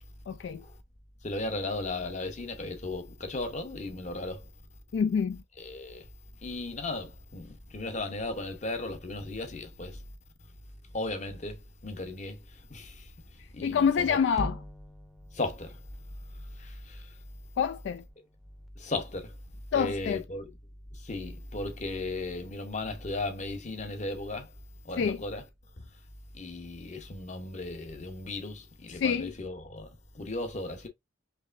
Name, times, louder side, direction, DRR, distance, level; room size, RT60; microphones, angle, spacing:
voice 1, 0.3-0.6 4.9-5.4 13.4-14.6 17.6-18.0 19.7-20.3 25.0-25.2 28.9-29.3, left 7 dB, 65° left, 0.3 m, -27 dB
voice 2, 1.2-4.4 5.7-6.1 6.4-10.0 10.9-12.4 12.7-13.0 13.5-13.8 14.1-14.2 15.3-15.8 16.6-17.0 18.8-19.3 19.7-20.5 21.0-24.5 24.8-25.4 26.3-29.9 30.1-30.9, left 2 dB, 40° left, 0.8 m, -36 dB
sound 1, 14.4-18.7, equal, ahead, 0.6 m, -44 dB
4.6 x 3.1 x 2.5 m
head